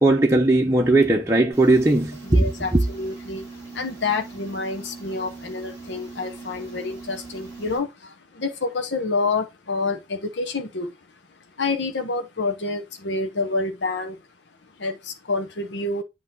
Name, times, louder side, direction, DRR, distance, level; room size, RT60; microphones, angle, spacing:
voice 1, 0.0-2.5 2.7-2.8, right 2 dB, 15° right, 0.7 m, -18 dB
sound 1, 1.5-7.8, right 4 dB, 15° left, 5.1 m, -40 dB
voice 2, 2.2-10.9 11.6-14.2 14.8-16.0, left 3 dB, 70° left, 0.9 m, -28 dB
8.0 x 3.0 x 5.3 m
head